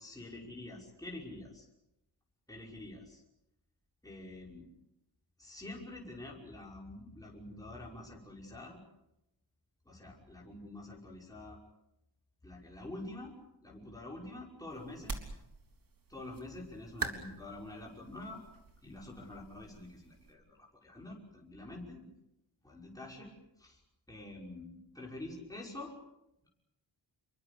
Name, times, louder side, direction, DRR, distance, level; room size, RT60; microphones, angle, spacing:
voice 1, 0.0-1.7 2.5-3.2 4.0-4.7 5.4-8.8 9.9-11.6 12.4-13.4 13.6-15.2 16.1-18.4 18.8-22.1 22.6-23.8 24.1-25.9, left 2 dB, 10° left, -3 dB, 5.8 m, -47 dB
sound 1, 14.7-20.3, right 4 dB, 45° right, 3.5 m, -45 dB
28.0 x 22.5 x 7.0 m, 0.86 s
wide cardioid pair, 110°, 45 cm